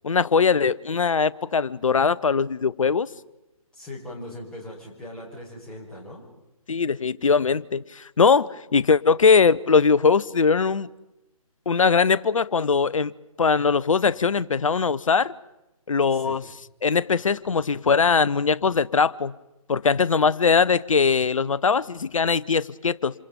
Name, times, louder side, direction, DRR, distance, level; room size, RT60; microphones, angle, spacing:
voice 1, 0.0-3.1 6.7-10.9 11.7-13.1 13.4-15.3 15.9-16.4 16.8-19.3 19.7-23.1, left 5 dB, 60° left, 0.8 m, -21 dB
voice 2, 3.7-6.3 16.1-16.4, left 1 dB, 5° left, 5.5 m, -39 dB
27.5 x 27.0 x 5.3 m
figure-of-eight pair, 145°, 19 cm